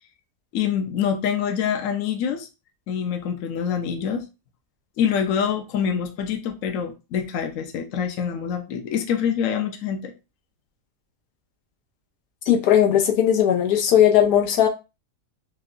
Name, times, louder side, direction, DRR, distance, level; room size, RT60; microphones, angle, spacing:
voice 1, 0.5-2.5 2.9-4.2 5.0-10.1, left 7 dB, 65° left, 1.0 m, -25 dB
voice 2, 12.5-14.7, left 10 dB, 90° left, 1.3 m, -18 dB
4.6 x 2.2 x 2.5 m
omnidirectional pair, 1.6 m